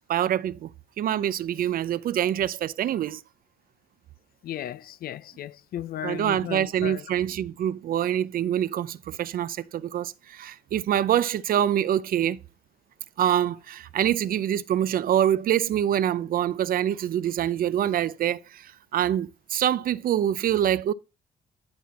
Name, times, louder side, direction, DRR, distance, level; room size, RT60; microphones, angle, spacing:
voice 1, 0.1-0.7 1.0-3.2 6.0-12.4 13.2-20.9, right 10 dB, 70° right, 0.5 m, -25 dB
voice 2, 4.4-7.0, left 12 dB, 80° left, 0.5 m, -35 dB
10.5 x 5.8 x 4.1 m
cardioid pair, 115°, 15 cm